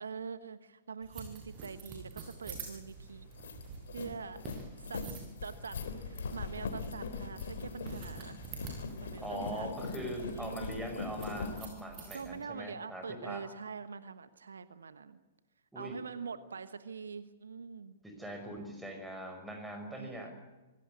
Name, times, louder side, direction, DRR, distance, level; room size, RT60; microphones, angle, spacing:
voice 1, 0.0-3.3 3.9-4.4 4.8-5.0 5.4-5.8 6.1-8.4 9.0-11.0 12.1-15.2 15.7-17.9 20.0-20.3, right 5 dB, 75° right, 13 dB, 1.2 m, -44 dB
sound 1, 1.0-12.4, right 5 dB, 30° right, 6.7 m, -48 dB
sound 2, 2.8-2.9 3.2-11.6, left 4 dB, 65° left, 3.5 m, -41 dB
voice 2, 9.2-13.5 15.7-16.0 18.0-20.3, right 1 dB, 5° right, 5 dB, 5.5 m, -42 dB
25.0 x 17.5 x 8.5 m, 1.2 s
figure-of-eight pair, 115°, 0 cm